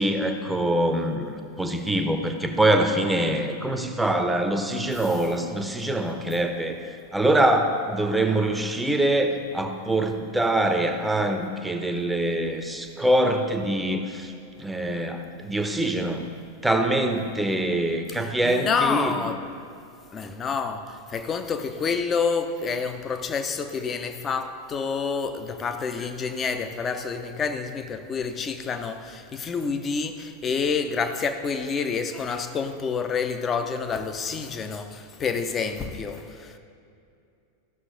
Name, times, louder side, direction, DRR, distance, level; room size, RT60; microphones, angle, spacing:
voice 1, 0.0-6.8 7.1-14.3 14.6-16.3 16.6-19.1, right 1 dB, 5° right, 0.8 m, -24 dB
voice 2, 18.2-19.4 20.1-36.6, left 5 dB, 25° left, 0.7 m, -28 dB
14.5 x 6.3 x 3.8 m
figure-of-eight pair, 90°, 0 cm